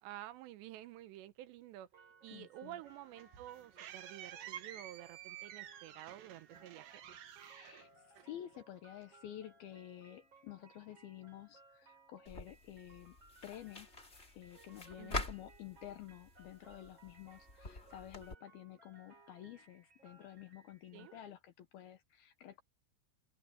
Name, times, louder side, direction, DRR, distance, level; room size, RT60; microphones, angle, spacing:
voice 1, 0.0-1.9 2.2-6.9 15.0-15.3 20.9-21.1, right 14 dB, 75° right, 2.9 m, -51 dB
sound 1, 1.9-21.2, right 3 dB, 25° right, 5.0 m, -64 dB
voice 2, 2.3-2.8 7.4-13.2 13.4-13.9 14.4-22.6, left 12 dB, 70° left, 2.5 m, -51 dB
sound 2, 2.8-8.6, right 11 dB, 60° right, 2.6 m, -51 dB
sound 3, 12.2-18.3, left 2 dB, 20° left, 2.0 m, -46 dB
omnidirectional pair, 5.3 m